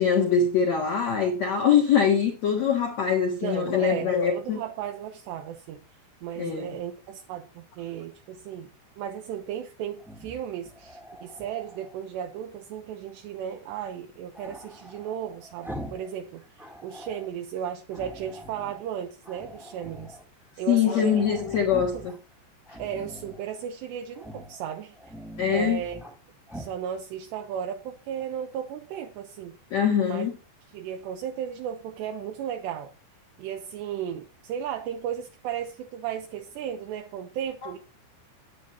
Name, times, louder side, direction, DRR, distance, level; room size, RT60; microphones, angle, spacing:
voice 1, 0.0-4.6 6.4-6.7 20.7-22.1 25.4-25.8 29.7-30.3, left 7 dB, 65° left, 1.8 m, -23 dB
voice 2, 3.4-5.8 6.2-8.7 9.0-20.2 20.6-21.3 21.9-22.1 22.8-25.0 25.5-26.0 26.5-29.6 30.1-30.3 30.7-32.9 33.4-37.8, right 9 dB, 75° right, 2.9 m, -35 dB
Growling, 10.0-12.0 14.3-16.1 16.4-17.3 17.9-18.8 19.2-20.2 20.5-20.6 20.8-22.2 22.6-23.4 24.1-24.6 24.9-26.1 26.5-26.8, equal, ahead, 0.7 m, -43 dB
11.5 x 9.0 x 4.3 m
omnidirectional pair, 5.4 m